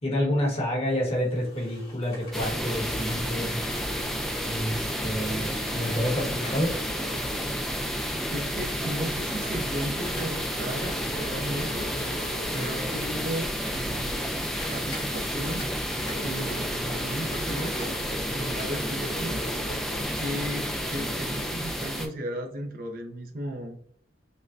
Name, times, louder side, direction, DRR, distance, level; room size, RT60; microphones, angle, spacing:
voice 1, 0.0-3.5 4.4-6.7, equal, 35° left, -3 dB, 1.2 m, -28 dB
sound 1, 1.1-20.0, equal, 60° left, 1.3 m, -44 dB
sound 2, 2.3-22.1, equal, ahead, 0.3 m, -31 dB
voice 2, 8.3-11.9 12.5-14.4 14.7-15.7 16.2-17.9 18.3-19.4 20.2-23.8, right 1 dB, 50° right, 2 dB, 0.6 m, -35 dB
5.3 x 2.2 x 2.5 m, 0.63 s
head